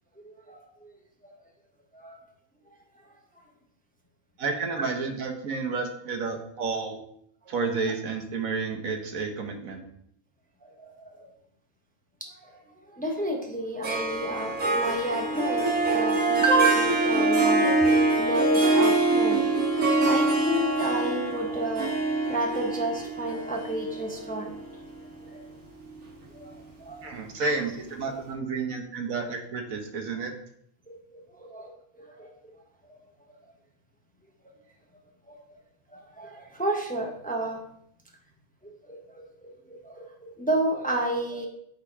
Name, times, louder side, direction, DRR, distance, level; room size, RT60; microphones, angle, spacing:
voice 1, 0.2-0.9 1.2-1.3 1.9-2.2 4.8-4.9 7.9-8.0 10.6-11.3 12.2-12.5 12.9-19.4 20.0-21.9 22.3-24.6 25.3-25.4 26.3-26.5 26.8-27.1 27.4-27.5 30.9-32.3 35.3-35.4 35.9-37.6 38.6-41.5, right 2 dB, 5° left, 1 dB, 0.9 m, -30 dB
voice 2, 4.4-7.0 7.5-9.8 27.0-30.3, right 4 dB, 70° right, 4 dB, 1.5 m, -31 dB
Harp, 13.8-25.3, right 2 dB, 90° right, 2.1 m, -25 dB
8.5 x 4.5 x 4.8 m, 0.69 s
omnidirectional pair, 1.5 m